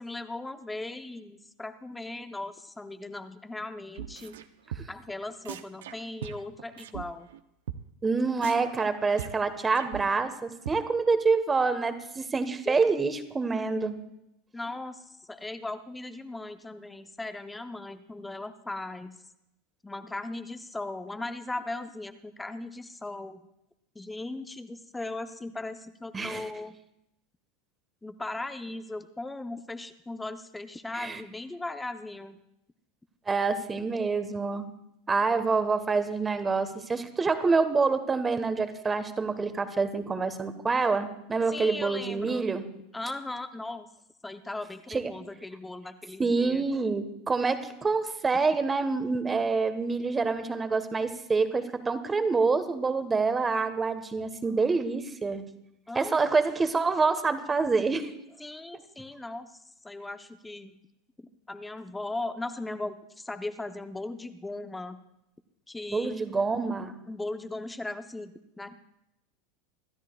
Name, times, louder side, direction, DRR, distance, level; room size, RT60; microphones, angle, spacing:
voice 1, 0.0-4.4 4.9-7.3 12.7-12.8 14.5-19.1 19.8-23.4 23.9-26.8 28.0-32.4 41.5-42.5 42.9-43.9 44.2-46.6 55.9-56.3 58.4-59.6 59.8-60.8 61.5-65.0 65.7-66.3 67.1-68.8, left 2 dB, 10° left, 9 dB, 0.8 m, -38 dB
sound 1, 3.9-4.5 4.7-5.1 5.4-7.0 7.3-7.4 7.7-7.8 8.0-8.1 8.4-10.4 10.7-10.8, right 10 dB, 75° right, 0.7 m, -39 dB
voice 2, 8.0-13.9 26.1-26.5 30.9-31.2 33.3-34.7 35.1-42.6 44.9-45.1 46.2-55.4 55.9-58.1 65.9-67.0, right 4 dB, 20° right, 10 dB, 1.3 m, -27 dB
26.5 x 13.0 x 2.4 m, 0.83 s
hypercardioid pair, 85°, 0 cm